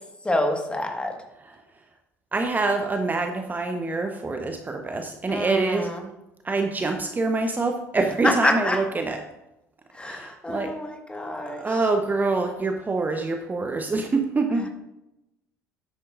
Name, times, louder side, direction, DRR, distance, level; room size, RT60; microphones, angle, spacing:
voice 1, 0.2-1.2 5.3-6.1 8.2-8.8 9.9-11.8 14.6-14.7, left 1 dB, 10° left, 3 dB, 1.7 m, -27 dB
voice 2, 2.3-5.9 6.4-9.2 10.0-10.8 11.6-14.7, right 3 dB, 20° right, 5 dB, 0.9 m, -25 dB
12.5 x 9.7 x 2.6 m, 0.91 s
figure-of-eight pair, 60°, 9 cm